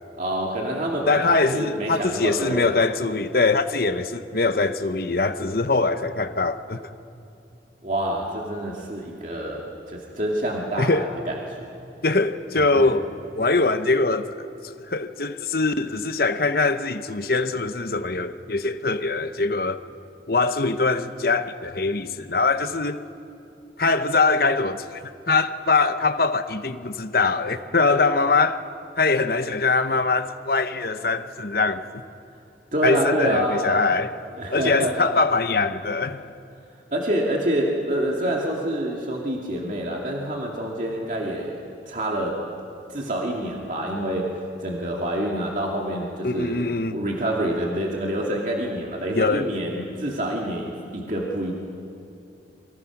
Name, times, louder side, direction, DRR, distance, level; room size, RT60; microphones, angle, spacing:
voice 1, 0.2-2.8 7.8-11.6 12.6-12.9 32.7-33.8 34.4-35.0 36.9-42.4 42.9-51.5, right 1 dB, 45° right, 2.4 m, -27 dB
voice 2, 1.1-6.8 10.8-11.1 12.0-13.1 13.3-19.8 20.3-23.0 23.8-28.6 29.0-31.8 32.8-34.2 34.5-36.3 46.2-47.0 49.1-49.5, left 3 dB, 55° left, 1.0 m, -23 dB
28.5 x 24.5 x 6.0 m
head